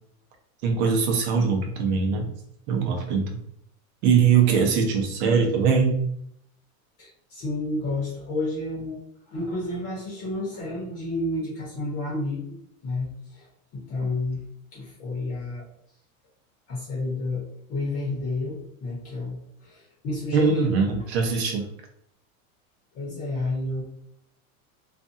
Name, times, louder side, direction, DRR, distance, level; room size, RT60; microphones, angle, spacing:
voice 1, 0.6-2.3 2.7-3.3 4.0-6.1 20.3-21.6, right 5 dB, 50° right, 3 dB, 0.7 m, -21 dB
voice 2, 7.0-9.0 9.3-12.6 12.8-13.5 13.7-14.4 14.7-15.7 16.7-20.8 22.9-23.8, left 2 dB, 35° left, -5 dB, 0.9 m, -30 dB
2.6 x 2.4 x 2.6 m, 0.71 s
supercardioid pair, 150°, 42 cm